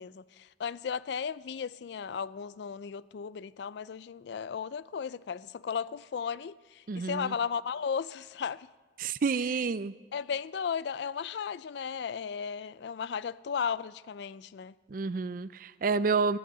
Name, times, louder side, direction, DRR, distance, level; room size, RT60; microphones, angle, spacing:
voice 1, 0.0-8.7 9.4-9.6 10.1-14.7, left 6 dB, 65° left, 0.3 m, -35 dB
voice 2, 6.9-7.3 9.0-9.9 14.9-16.4, right 4 dB, 45° right, 0.4 m, -29 dB
14.0 x 9.8 x 7.4 m
head